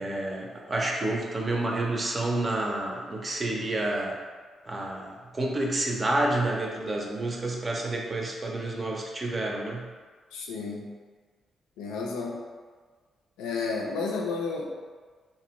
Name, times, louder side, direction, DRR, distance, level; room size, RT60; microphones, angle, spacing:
voice 1, 0.0-4.2 4.7-9.9, right 2 dB, 35° right, -1 dB, 0.5 m, -29 dB
voice 2, 10.3-10.9 11.8-12.4 13.4-14.8, left 4 dB, 85° left, -1 dB, 0.4 m, -31 dB
2.7 x 2.1 x 2.9 m, 1.5 s
supercardioid pair, 50°, 0 cm